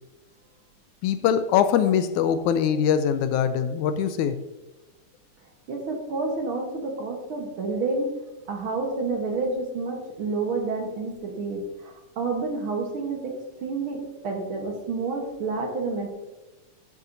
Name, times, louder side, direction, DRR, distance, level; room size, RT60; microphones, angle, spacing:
voice 1, 1.0-4.4, left 8 dB, 80° left, 10 dB, 1.8 m, -22 dB
voice 2, 5.7-8.1 8.5-13.3 13.6-16.1, right 3 dB, 60° right, 1 dB, 1.4 m, -29 dB
12.0 x 8.2 x 2.6 m, 1.1 s
omnidirectional pair, 3.8 m